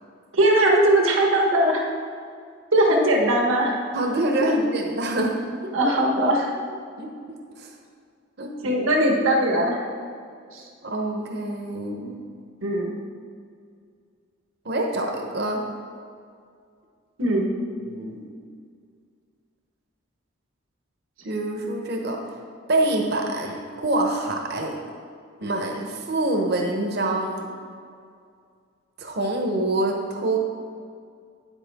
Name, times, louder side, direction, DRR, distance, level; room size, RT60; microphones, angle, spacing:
voice 1, 0.3-1.8 2.7-3.8 4.4-4.5 5.7-6.5 8.6-9.8 10.5-10.6 12.6-12.9 17.2-17.5, right 1 dB, 85° right, 0 dB, 1.4 m, -20 dB
voice 2, 3.9-5.4 5.8-5.9 7.0-7.1 7.6-7.7 8.4-8.5 10.8-12.2 14.6-15.6 17.8-18.3 21.2-22.2 22.7-24.8 25.4-27.5 29.0-30.4, right 2 dB, 55° right, 1 dB, 0.9 m, -26 dB
9.9 x 8.4 x 3.6 m, 2.2 s
head